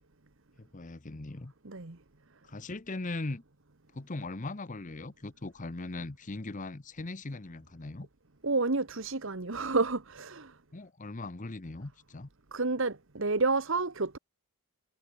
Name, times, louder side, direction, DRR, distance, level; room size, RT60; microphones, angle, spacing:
voice 1, 0.6-1.5 2.4-3.4 3.9-8.1 10.7-12.3, left 2 dB, 35° left, 0.9 m, -39 dB
voice 2, 1.6-2.0 8.4-10.6 12.5-14.2, right 3 dB, 60° right, 1.4 m, -30 dB
head